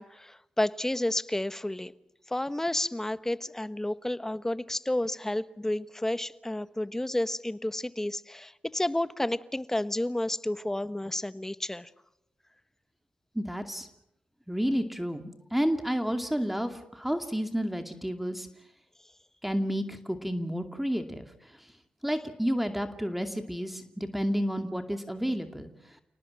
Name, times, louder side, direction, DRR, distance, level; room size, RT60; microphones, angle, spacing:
voice 1, 0.0-1.9 2.3-11.9, left 1 dB, 15° left, 14 dB, 1.2 m, -31 dB
voice 2, 13.4-13.9 14.5-18.5 19.4-21.3 22.0-25.7, equal, 5° right, 6 dB, 2.4 m, -30 dB
29.5 x 18.5 x 7.6 m, 0.81 s
cardioid pair, 50°, 3 cm